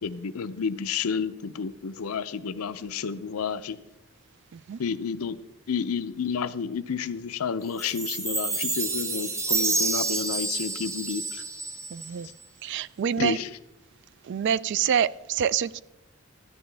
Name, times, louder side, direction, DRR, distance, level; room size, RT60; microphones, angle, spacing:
voice 1, 0.0-3.8 4.8-5.4 5.7-11.4 13.2-13.5, left 6 dB, 75° left, 0.5 m, -30 dB
Chime, 7.8-12.3, right 3 dB, 15° right, 0.9 m, -29 dB
voice 2, 11.9-12.3 12.6-13.4 14.3-15.8, right 8 dB, 55° right, 0.3 m, -26 dB
14.0 x 10.0 x 3.4 m
head